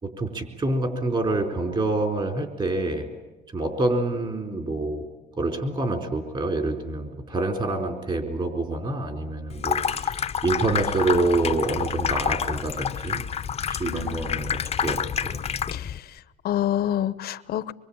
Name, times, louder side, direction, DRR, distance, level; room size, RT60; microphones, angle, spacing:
voice 1, 0.0-3.1 3.5-5.1 5.4-13.2 13.7-15.0 15.3-15.4, right 2 dB, 30° right, 4.2 m, -27 dB
Water tap faucet / Sink (filling or washing), 9.5-16.0, left 7 dB, 35° left, 0.9 m, -28 dB
voice 2, 13.8-14.6 15.7-17.7, left 11 dB, 65° left, 1.1 m, -29 dB
25.0 x 23.0 x 8.8 m
cardioid pair, 110°, 17 cm